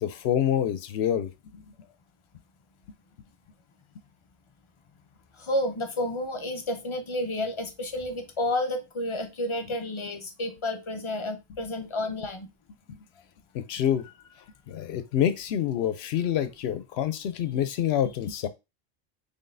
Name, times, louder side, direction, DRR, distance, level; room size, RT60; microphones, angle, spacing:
voice 1, 0.0-1.6 12.9-13.0 13.5-14.1 14.7-18.5, left 10 dB, 80° left, 0.8 m, -27 dB
voice 2, 5.4-12.5, left 1 dB, 40° left, 0.5 m, -30 dB
3.9 x 3.5 x 2.5 m
omnidirectional pair, 1.1 m